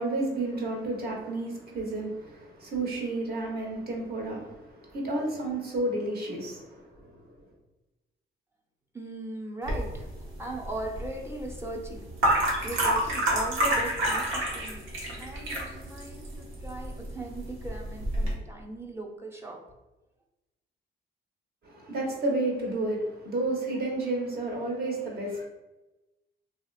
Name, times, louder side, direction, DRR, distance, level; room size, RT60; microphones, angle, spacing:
voice 1, 0.0-7.3 21.6-25.4, right 2 dB, 50° right, -1 dB, 1.1 m, -31 dB
voice 2, 8.9-10.1 10.4-12.1 12.6-14.9 15.2-19.6, right 2 dB, 15° right, 0 dB, 0.6 m, -39 dB
sound 1, 9.6-18.3, right 1 dB, 80° right, 1.0 m, -29 dB
3.3 x 2.7 x 2.4 m, 1.0 s
cardioid pair, 90°, 20 cm